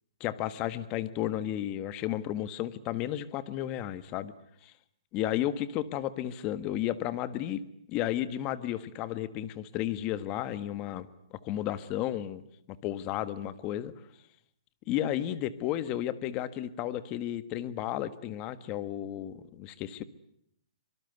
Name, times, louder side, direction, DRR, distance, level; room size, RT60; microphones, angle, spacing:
voice 1, 0.2-4.3 4.6-4.7 5.1-7.6 7.9-12.4 12.8-13.9 14.9-20.0, left 12 dB, 25° left, 13 dB, 1.4 m, -33 dB
25.5 x 24.0 x 8.1 m, 0.71 s
hypercardioid pair, 155°, 3 cm